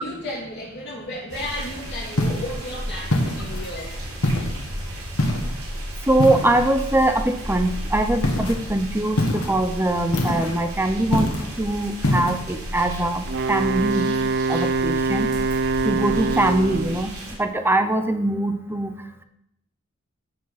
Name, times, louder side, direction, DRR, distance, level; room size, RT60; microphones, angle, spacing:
voice 1, 0.0-4.0, left 1 dB, 50° left, -4 dB, 3.1 m, -33 dB
sound 1, 1.3-17.4, equal, 85° right, 3.7 m, -33 dB
sound 2, 2.2-2.5 3.1-3.7 4.2-4.6 5.2-5.6 6.2-6.7 8.2-8.6 9.2-9.6 10.1-10.6 11.1-11.5 12.0-12.4, left 1 dB, 75° left, 1.6 m, -24 dB
voice 2, 6.1-11.3 11.6-14.1 14.5-15.3 15.8-17.1 17.4-18.9, right 1 dB, 10° right, 8 dB, 0.7 m, -22 dB
Wind instrument woodwind instrument, 13.3-17.0, right 3 dB, 55° right, 0.4 m, -24 dB
14.0 x 5.2 x 4.1 m, 0.78 s
head